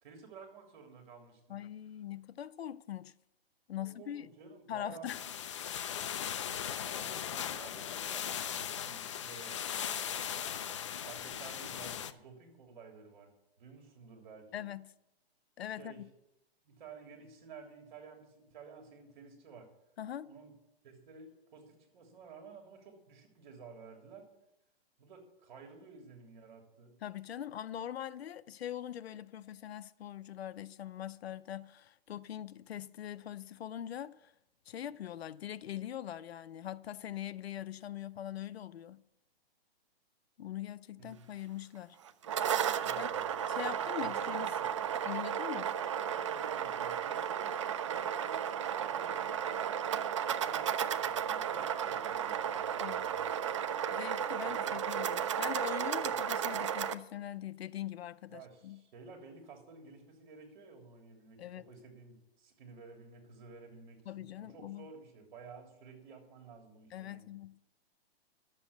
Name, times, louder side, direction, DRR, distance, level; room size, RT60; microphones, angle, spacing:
voice 1, 0.0-1.6 3.8-5.1 6.9-10.0 11.0-13.3 13.6-14.6 15.7-16.0 16.7-19.7 20.2-20.5 20.8-24.3 25.0-26.9 41.0-41.3 42.7-44.8 46.1-47.5 47.8-49.7 50.4-53.3 54.4-54.8 56.1-56.2 58.3-67.3, right 5 dB, 50° right, 3.3 m, -53 dB
voice 2, 1.5-3.1 3.7-4.3 4.7-5.2 5.5-5.8 14.5-14.9 15.6-16.0 20.0-20.3 27.0-34.3 34.7-39.0 40.4-42.0 42.9-43.1 43.5-44.5 45.1-45.8 52.8-53.1 53.9-58.8 61.4-61.7 64.1-64.9 66.9-67.6, left 11 dB, 75° left, 0.6 m, -42 dB
sound 1, 5.1-12.1, left 9 dB, 30° left, 0.4 m, -38 dB
sound 2, 42.1-56.9, right 9 dB, 30° right, 0.4 m, -34 dB
11.5 x 7.7 x 7.0 m
hypercardioid pair, 160°, 31 cm